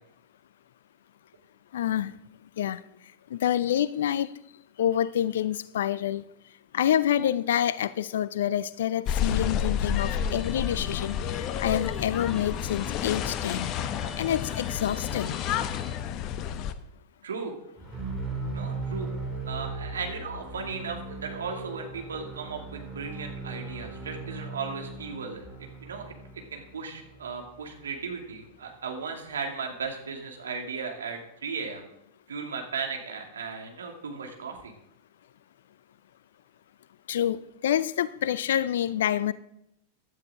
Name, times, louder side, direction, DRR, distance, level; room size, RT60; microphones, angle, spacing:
voice 1, 1.7-2.1 2.6-2.8 3.3-4.3 4.8-6.2 6.7-13.7 14.2-15.4 37.1-39.3, left 10 dB, 60° left, 18 dB, 0.5 m, -27 dB
sound 1, 9.1-16.7, left 8 dB, 40° left, 0.8 m, -30 dB
Guitar, 10.0-16.0, left 2 dB, 20° left, 2.0 m, -46 dB
voice 2, 17.2-17.5 18.5-19.1 19.5-25.5 25.8-31.9 32.3-34.7, right 5 dB, 70° right, 2 dB, 2.6 m, -36 dB
sound 2, 17.8-27.8, right 3 dB, 5° right, 3.0 m, -38 dB
16.0 x 12.0 x 3.8 m, 0.81 s
figure-of-eight pair, 90°, 0 cm